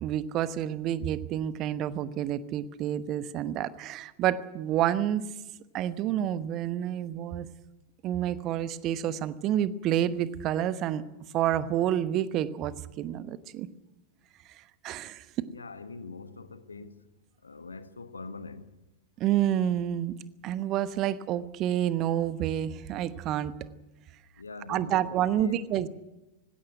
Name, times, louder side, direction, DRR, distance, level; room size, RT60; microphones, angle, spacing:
voice 1, 0.0-5.2 5.7-7.5 8.0-11.0 11.3-12.7 13.0-13.7 14.8-15.2 19.2-20.1 20.4-23.5 24.7-25.9, right 11 dB, 35° right, 1.0 m, -29 dB
voice 2, 15.4-17.0 17.4-18.7 24.4-25.0 25.3-25.9, left 4 dB, 75° left, 1.4 m, -43 dB
19.0 x 16.5 x 9.1 m
figure-of-eight pair, 90°, 0 cm